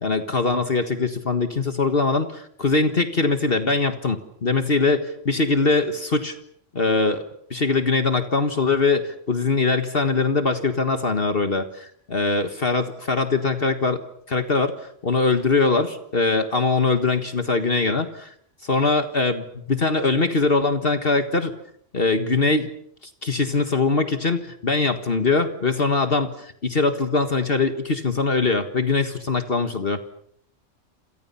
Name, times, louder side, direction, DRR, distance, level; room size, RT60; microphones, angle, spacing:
voice 1, 0.0-6.4 6.7-7.2 7.5-14.0 14.3-18.3 18.6-21.5 21.9-22.7 23.0-30.1, left 3 dB, 50° left, 8 dB, 1.8 m, -22 dB
28.0 x 28.0 x 5.7 m, 0.68 s
omnidirectional pair, 1.3 m